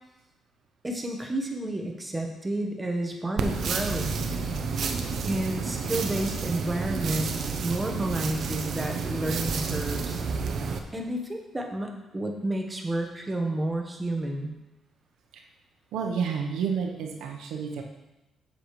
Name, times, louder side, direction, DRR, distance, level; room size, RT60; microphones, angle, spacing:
voice 1, 0.8-4.3 5.3-7.3 7.6-10.2 10.9-14.5, right 1 dB, 15° right, 2 dB, 1.3 m, -31 dB
sound 1, 3.4-10.8, right 5 dB, 60° right, 0.7 m, -30 dB
voice 2, 15.9-17.8, right 6 dB, 85° right, 3 dB, 1.0 m, -30 dB
7.6 x 6.9 x 3.2 m, 0.98 s
cardioid pair, 90°, 0 cm